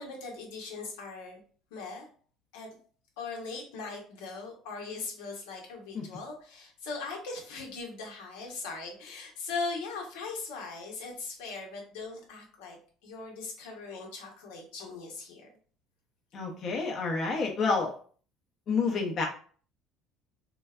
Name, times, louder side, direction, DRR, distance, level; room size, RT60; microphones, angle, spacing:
voice 1, 0.0-1.4 1.7-2.1 2.5-2.7 3.2-12.8 13.0-15.5, left 4 dB, 90° left, 0 dB, 1.0 m, -39 dB
voice 2, 16.3-17.9 18.7-19.3, left 4 dB, 45° left, 0 dB, 0.8 m, -29 dB
3.8 x 2.2 x 2.4 m, 0.43 s
supercardioid pair, 105°, 0 cm